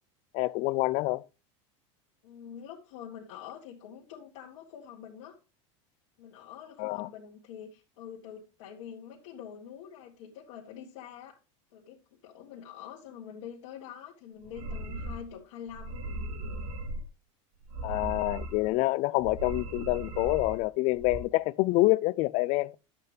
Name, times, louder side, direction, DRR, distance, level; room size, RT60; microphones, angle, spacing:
voice 1, 0.3-1.2 6.8-7.1 17.8-22.8, left 20 dB, 45° left, 0.4 m, -27 dB
voice 2, 2.2-5.4 6.2-11.4 11.7-16.1, left 9 dB, 80° left, 1.8 m, -46 dB
sound 1, 14.4-15.3 15.7-17.0 17.6-18.7 19.2-20.6 20.9-21.2, right 1 dB, 80° right, 3.1 m, -38 dB
11.0 x 8.1 x 3.4 m
supercardioid pair, 145°, 16 cm